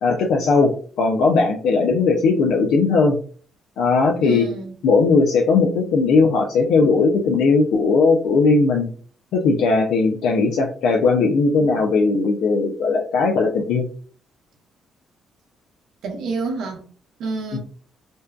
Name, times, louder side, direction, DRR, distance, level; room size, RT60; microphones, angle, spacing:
voice 1, 0.0-3.2 3.8-4.5 4.8-8.9 9.3-13.8 17.5-17.6, left 4 dB, 80° left, 0.4 m, -18 dB
voice 2, 4.2-4.8 16.0-16.8 17.2-17.6, right 4 dB, 75° right, 0.6 m, -28 dB
2.6 x 2.2 x 2.2 m
cardioid pair, 90°, 0 cm